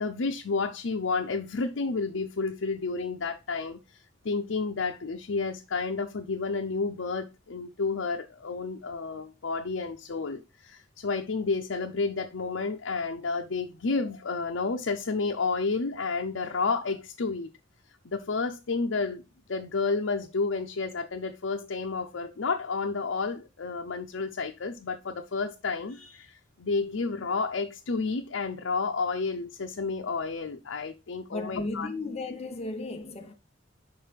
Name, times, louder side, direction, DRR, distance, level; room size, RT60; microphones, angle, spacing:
voice 1, 0.0-4.0 4.2-17.5 18.0-19.2 19.5-31.9, left 4 dB, 90° left, 0.6 m, -31 dB
voice 2, 31.3-33.3, left 2 dB, 35° left, 0.8 m, -35 dB
5.4 x 4.6 x 5.0 m
head